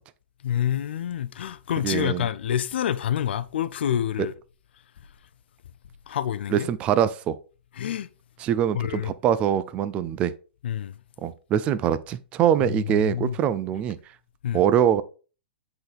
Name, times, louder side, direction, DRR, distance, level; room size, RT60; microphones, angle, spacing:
voice 1, 0.4-4.3 6.1-6.7 7.8-8.1 8.7-9.1 10.6-10.9 13.0-13.3 14.4-14.6, left 10 dB, 75° left, 0.5 m, -27 dB
voice 2, 1.8-2.3 4.2-4.3 6.5-7.4 8.4-10.3 11.2-14.0 14.5-15.0, right 9 dB, 20° right, 0.4 m, -23 dB
8.0 x 3.9 x 3.5 m
hypercardioid pair, 160°, 6 cm